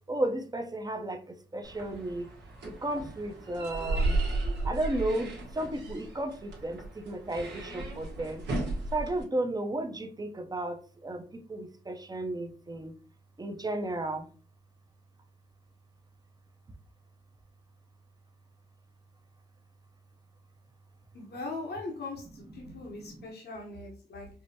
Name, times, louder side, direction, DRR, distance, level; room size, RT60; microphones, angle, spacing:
voice 1, 0.1-2.3 2.6-4.2 4.6-8.4 8.9-13.0 13.4-14.3 22.6-23.3, right 1 dB, 20° right, 7 dB, 0.6 m, -34 dB
sound 1, 1.6-9.2, right 2 dB, 85° right, 1.1 m, -34 dB
voice 2, 21.1-24.3, left 2 dB, 70° left, -1 dB, 1.0 m, -40 dB
4.6 x 2.1 x 2.7 m, 0.40 s
cardioid pair, 60°, 17 cm